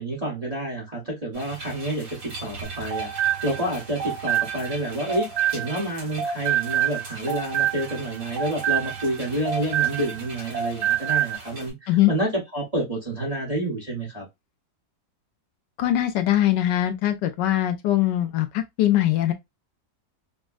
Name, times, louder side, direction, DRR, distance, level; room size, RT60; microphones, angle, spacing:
voice 1, 0.0-2.1 2.4-5.3 5.5-14.2, right 1 dB, 25° right, 0.9 m, -29 dB
sound 1, 1.3-11.7, right 3 dB, 85° right, 2.7 m, -41 dB
sound 2, 2.6-5.9 6.2-10.3 10.5-11.4, right 10 dB, 65° right, 1.5 m, -26 dB
voice 2, 15.8-19.3, left 13 dB, 75° left, 1.1 m, -21 dB
5.2 x 2.1 x 2.3 m
omnidirectional pair, 2.0 m